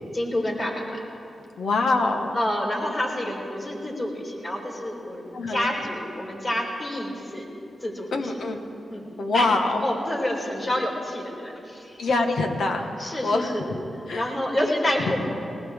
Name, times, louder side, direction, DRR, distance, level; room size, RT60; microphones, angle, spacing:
voice 1, 0.1-1.0 2.3-7.5 7.8-8.1 8.9-9.1 9.3-9.5 9.8-12.0 13.0-13.7 14.1-15.3, left 1 dB, 45° left, -2 dB, 4.2 m, -28 dB
voice 2, 1.6-2.4 5.3-5.7 8.1-8.6 9.2-9.9 12.0-13.8 14.1-14.3 14.6-14.7 15.0-15.1, left 3 dB, 80° left, 4 dB, 1.3 m, -25 dB
19.5 x 19.5 x 3.6 m, 2.8 s
cardioid pair, 65°, 0 cm